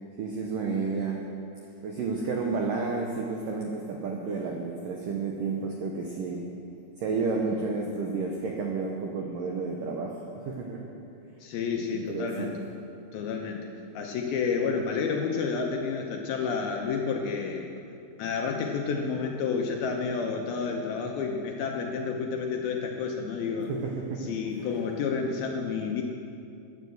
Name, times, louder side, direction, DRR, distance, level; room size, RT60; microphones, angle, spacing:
voice 1, 0.2-1.2 1.8-6.4 7.0-10.9 11.9-12.6 23.7-24.3, right 4 dB, 80° right, 1 dB, 1.9 m, -31 dB
voice 2, 11.4-12.5 13.1-13.6 13.9-17.7 18.2-23.7 24.2-26.0, left 5 dB, 75° left, 2 dB, 2.4 m, -30 dB
14.0 x 9.7 x 7.9 m, 2.6 s
omnidirectional pair, 5.2 m